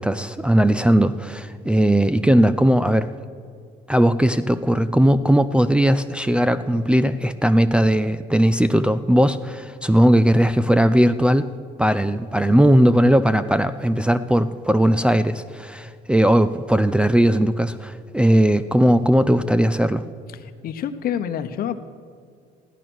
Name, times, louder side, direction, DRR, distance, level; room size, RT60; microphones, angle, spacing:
voice 1, 0.0-3.1 3.9-11.5 11.8-20.0, equal, 5° right, 9 dB, 0.4 m, -18 dB
voice 2, 20.3-21.8, left 9 dB, 60° left, 10 dB, 0.9 m, -27 dB
15.0 x 11.0 x 6.2 m, 2.2 s
cardioid pair, 110°, 17 cm